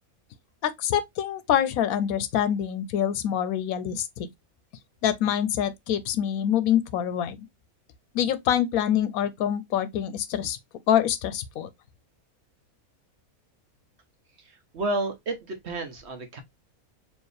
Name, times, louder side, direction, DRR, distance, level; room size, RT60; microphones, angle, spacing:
voice 1, 0.6-4.3 5.0-7.5 8.1-10.6 10.9-11.7, left 10 dB, 80° left, 1.0 m, -25 dB
voice 2, 14.5-16.4, right 2 dB, 55° right, 1.0 m, -31 dB
4.5 x 2.8 x 3.2 m
omnidirectional pair, 1.5 m